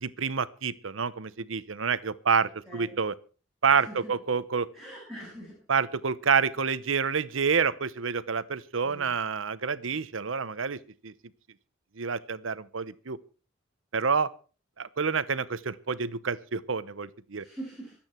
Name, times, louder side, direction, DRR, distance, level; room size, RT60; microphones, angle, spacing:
voice 1, 0.0-3.2 3.6-4.7 5.7-11.1 12.0-13.2 13.9-14.3 14.8-17.4, right 5 dB, 80° right, 17 dB, 0.8 m, -28 dB
voice 2, 2.7-3.0 3.7-4.1 4.7-5.6 8.8-9.1 17.3-18.0, right 1 dB, ahead, -5 dB, 7.0 m, -43 dB
25.0 x 8.8 x 4.4 m, 0.37 s
head